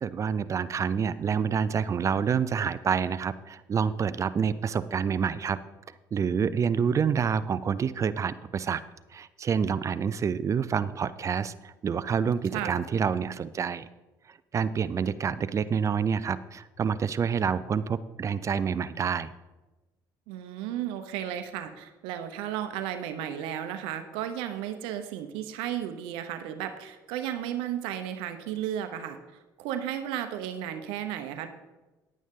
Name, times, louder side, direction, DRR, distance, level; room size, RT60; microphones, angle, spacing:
voice 1, 0.0-5.6 6.1-8.8 9.1-13.9 14.5-19.3, right 6 dB, 35° right, 16 dB, 0.5 m, -27 dB
voice 2, 12.5-12.8 20.3-29.2 29.6-31.5, right 10 dB, 90° right, 8 dB, 0.8 m, -34 dB
10.0 x 9.2 x 3.7 m, 1.1 s
supercardioid pair, 90°, 8 cm